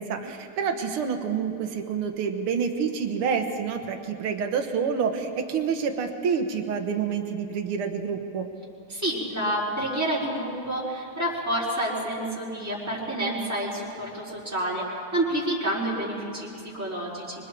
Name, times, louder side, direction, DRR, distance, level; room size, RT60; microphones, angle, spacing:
voice 1, 0.0-8.5, right 6 dB, 80° right, 5 dB, 2.1 m, -28 dB
voice 2, 8.9-17.3, right 1 dB, 5° right, -8 dB, 4.5 m, -29 dB
25.5 x 24.0 x 4.6 m, 2.6 s
omnidirectional pair, 2.4 m